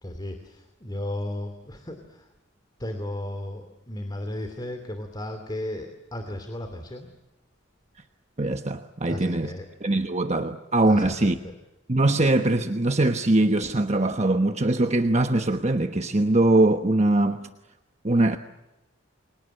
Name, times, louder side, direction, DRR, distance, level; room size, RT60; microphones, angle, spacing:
voice 1, 0.0-2.3 2.8-7.1 9.1-9.7 10.9-11.5, left 1 dB, 20° left, 2.6 m, -34 dB
voice 2, 8.4-9.5 9.8-11.4 11.9-17.5 18.0-18.4, right 2 dB, 30° right, 1.1 m, -22 dB
30.0 x 24.5 x 7.8 m
head